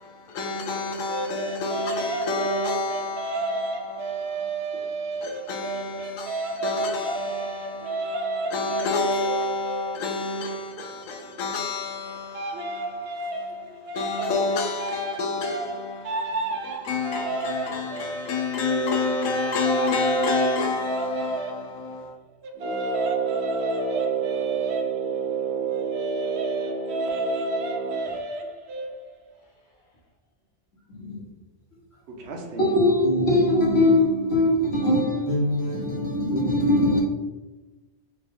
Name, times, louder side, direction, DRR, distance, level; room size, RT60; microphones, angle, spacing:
voice 1, 0.3-3.4 5.2-7.9 8.5-12.4 14.0-16.0 16.9-22.1, left 3 dB, 80° left, 1.0 m, -28 dB
voice 2, 1.1-10.1 12.3-21.9 22.4-29.1 32.2-32.7, right 2 dB, 60° right, 0.8 m, -32 dB
Brass instrument, 22.6-28.2, right 5 dB, 80° right, 1.1 m, -29 dB
voice 3, 30.9-31.2 32.6-37.0, left 1 dB, 55° left, 1.1 m, -21 dB
3.6 x 2.5 x 3.3 m
omnidirectional pair, 1.4 m